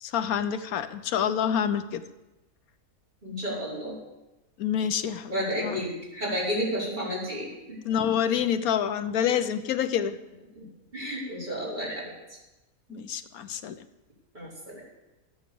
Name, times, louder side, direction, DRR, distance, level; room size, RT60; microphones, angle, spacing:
voice 1, 0.0-2.0 4.6-5.3 5.6-5.8 7.8-10.2 12.9-13.7, left 8 dB, 90° left, 11 dB, 1.2 m, -27 dB
voice 2, 3.2-4.0 5.3-7.8 10.6-10.7 10.9-12.1 12.9-13.0 14.3-14.8, equal, 30° right, -6 dB, 4.9 m, -32 dB
13.5 x 9.5 x 7.0 m, 1.0 s
omnidirectional pair, 1.5 m